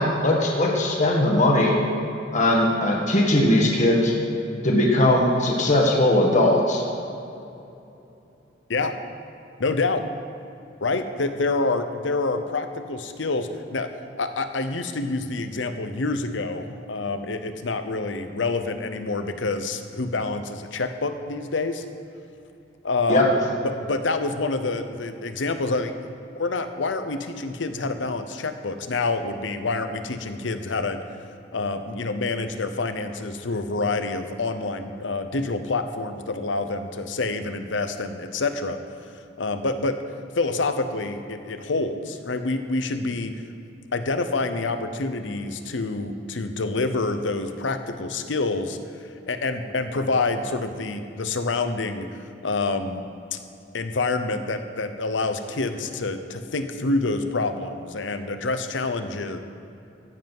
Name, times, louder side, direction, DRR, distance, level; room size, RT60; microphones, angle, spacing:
voice 1, 0.0-1.8 2.3-4.1 4.6-6.8 23.1-23.3, left 1 dB, 40° left, -1 dB, 1.6 m, -19 dB
voice 2, 9.6-10.0 10.8-13.9 14.2-21.8 22.8-23.3 23.6-31.0 31.5-38.8 39.4-40.0 40.4-43.3 43.9-52.1 52.4-53.0 53.3-53.4 53.7-59.4, left 3 dB, 80° left, 9 dB, 0.8 m, -27 dB
15.0 x 7.9 x 5.4 m, 2.8 s
head